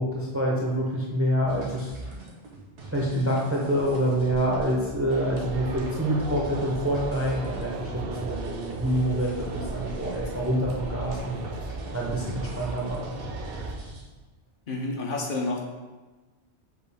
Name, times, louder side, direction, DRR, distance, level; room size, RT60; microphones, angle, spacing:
voice 1, 0.0-1.9 2.9-11.4 11.9-13.2, equal, 20° right, -3 dB, 0.4 m, -27 dB
sound 1, 1.5-14.0, right 2 dB, 85° right, 1.2 m, -39 dB
sound 2, 5.1-13.7, right 4 dB, 65° right, 0.7 m, -38 dB
voice 2, 14.7-15.6, left 2 dB, 55° left, -1 dB, 0.7 m, -29 dB
6.6 x 2.4 x 3.4 m, 1.2 s
omnidirectional pair, 1.1 m